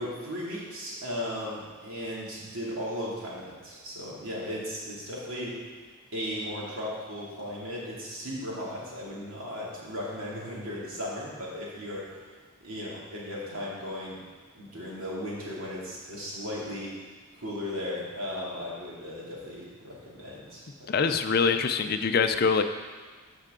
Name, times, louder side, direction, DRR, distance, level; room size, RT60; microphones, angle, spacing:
voice 1, 0.0-5.5 6.1-12.3 12.6-14.2 14.5-16.9 17.3-20.9, left 1 dB, 75° right, -6 dB, 2.6 m, -36 dB
voice 2, 20.9-22.6, left 5 dB, 45° left, 8 dB, 0.4 m, -24 dB
12.0 x 5.6 x 3.7 m, 1.4 s
head